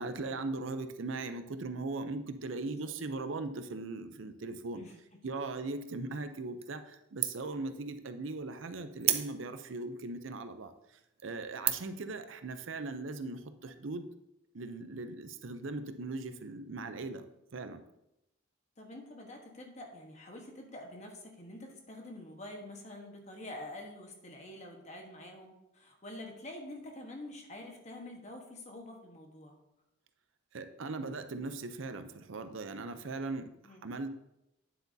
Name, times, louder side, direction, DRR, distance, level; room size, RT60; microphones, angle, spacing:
voice 1, 0.0-4.8 5.2-10.7 11.2-14.1 14.5-17.2 17.5-17.8 30.5-33.5 33.8-34.1, right 3 dB, 70° right, 9 dB, 0.6 m, -39 dB
voice 2, 2.6-2.9 4.7-5.2 18.8-29.6 33.6-33.8, left 1 dB, 35° left, 2 dB, 1.3 m, -47 dB
sound 1, 6.6-7.0 7.2-7.6 8.0-8.1 9.0-9.7 10.3-10.4 11.0-11.2 11.6-12.0, right 10 dB, 30° right, 0.5 m, -32 dB
9.4 x 7.8 x 2.7 m, 0.86 s
head